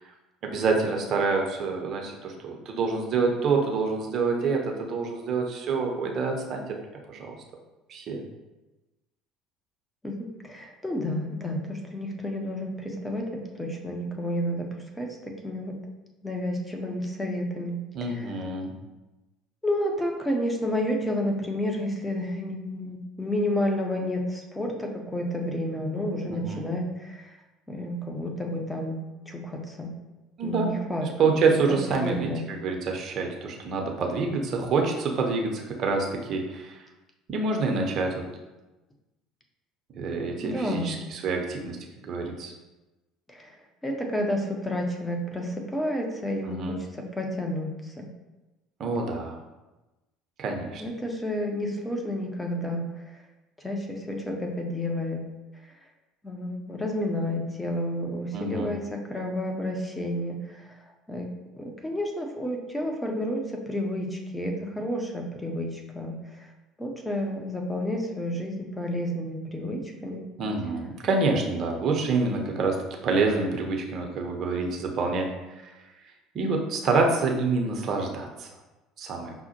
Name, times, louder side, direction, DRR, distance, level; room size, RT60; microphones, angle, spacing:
voice 1, 0.4-6.8 7.1-7.3 7.9-8.2 17.9-18.7 26.3-26.7 30.4-30.7 31.0-36.8 37.3-38.2 40.0-41.8 42.0-42.5 46.4-46.8 48.8-49.4 50.4-50.8 58.3-58.7 70.4-72.8 73.0-75.7 76.3-78.5 79.0-79.3, right 4 dB, 45° right, 2 dB, 0.6 m, -27 dB
voice 2, 10.0-15.7 16.2-17.8 18.1-18.2 19.6-27.2 27.7-29.0 29.3-29.9 30.4-31.5 31.9-32.4 40.4-40.9 43.3-43.5 43.8-46.8 47.2-47.7 48.0-48.1 50.8-52.9 53.6-55.2 56.2-60.4 61.1-61.3 61.6-66.1 66.8-70.3, left 1 dB, 10° left, 1 dB, 0.7 m, -30 dB
5.5 x 2.1 x 2.9 m, 1.1 s
figure-of-eight pair, 60°, 0 cm